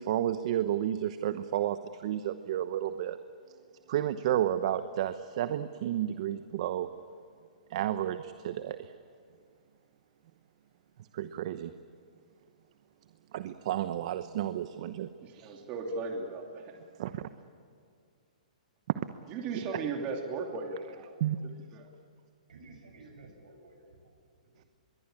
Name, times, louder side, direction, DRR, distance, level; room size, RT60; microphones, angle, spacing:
voice 1, 0.0-3.2 3.9-6.9 7.7-8.9 11.1-11.7 13.3-15.1 15.3-15.6 17.0-17.2 21.2-21.4, right 11 dB, 55° right, 11 dB, 1.0 m, -31 dB
voice 2, 15.2-16.8 19.3-21.1 21.5-21.9, right 4 dB, 30° right, 1 dB, 2.8 m, -37 dB
voice 3, 22.5-24.2 24.4-24.7, right 3 dB, 80° right, 4 dB, 7.6 m, -53 dB
25.0 x 22.5 x 8.9 m, 2.3 s
hypercardioid pair, 135°, 4 cm